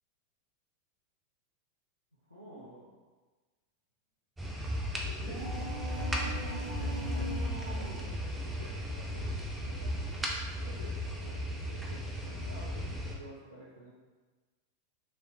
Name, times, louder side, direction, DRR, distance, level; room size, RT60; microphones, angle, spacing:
voice 1, 2.2-3.0 4.8-5.5 6.7-10.0 10.4-11.0 11.2-13.9, right 1 dB, 85° left, -9 dB, 0.7 m, -51 dB
sound 1, 4.4-13.1, equal, 10° right, 0.5 m, -35 dB
sound 2, 5.2-8.2, equal, 25° right, 0.8 m, -41 dB
3.2 x 3.0 x 2.6 m, 1.3 s
figure-of-eight pair, 90°, 0 cm